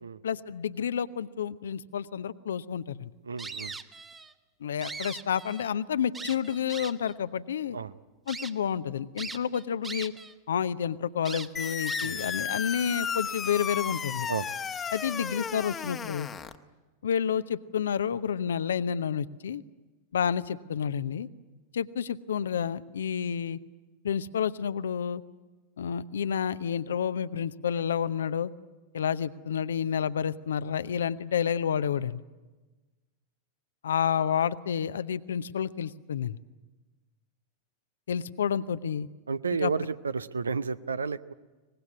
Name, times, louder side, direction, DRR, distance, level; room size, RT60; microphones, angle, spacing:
voice 1, 0.2-3.1 4.6-7.8 8.3-10.1 10.5-14.3 14.9-16.3 17.0-19.6 20.1-21.3 21.7-23.6 24.0-25.2 25.8-28.5 28.9-32.2 33.8-36.4 38.1-39.1 39.6-39.7, left 8 dB, 65° left, 14 dB, 0.8 m, -30 dB
voice 2, 3.2-3.7 7.7-7.9 12.0-12.3 14.3-14.5 39.3-41.3, right 5 dB, 75° right, 15 dB, 0.7 m, -32 dB
sound 1, 3.4-4.3 4.7-5.7 6.1-7.1 7.7-7.8 8.3-8.5 9.2-10.3 10.6-10.7 11.2-12.3, right 4 dB, 15° right, 1.2 m, -40 dB
sound 2, 11.6-16.6, left 7 dB, 20° left, 1.2 m, -34 dB
24.0 x 20.0 x 9.7 m, 1.2 s
figure-of-eight pair, 90°, 0 cm